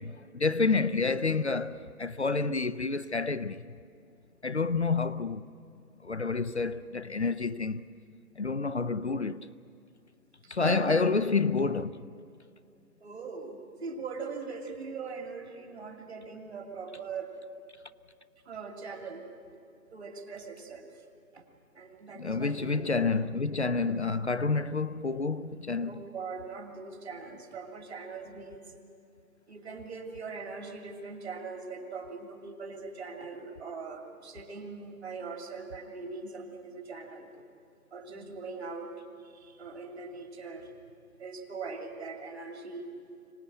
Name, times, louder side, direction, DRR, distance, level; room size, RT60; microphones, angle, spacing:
voice 1, 0.0-3.6 4.4-5.5 6.0-7.8 8.4-9.5 10.5-12.1 22.2-26.0, left 4 dB, 50° left, 0.5 m, -29 dB
voice 2, 10.6-11.1 13.0-17.4 18.4-19.3 19.9-21.0 21.3-21.4 21.7-22.8 25.8-28.8 29.5-37.4 37.9-38.9 39.2-40.7 41.2-42.9, right 4 dB, 45° right, 2.6 m, -41 dB
25.0 x 18.0 x 8.8 m
figure-of-eight pair, 165°, 46 cm